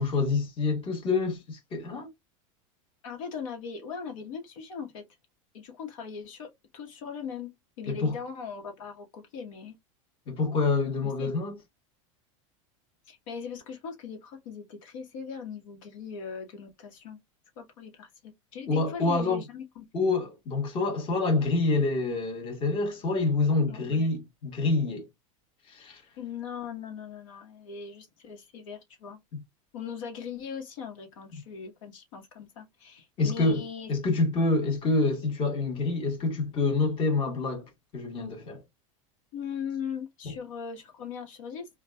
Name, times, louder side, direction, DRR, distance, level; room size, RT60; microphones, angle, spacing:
voice 1, 0.0-2.1 7.9-8.1 10.3-11.6 18.7-19.4 19.9-25.1 25.7-26.0 29.3-29.4 33.2-38.6 40.2-40.3, left 3 dB, 30° left, 1.3 m, -27 dB
voice 2, 3.0-5.0 5.5-7.5 7.8-9.7 11.2-11.3 13.1-17.2 17.6-19.8 23.7-24.1 26.2-29.2 29.7-33.9 39.3-41.7, left 6 dB, 70° left, 1.1 m, -39 dB
3.9 x 2.3 x 2.2 m
supercardioid pair, 125°, 17 cm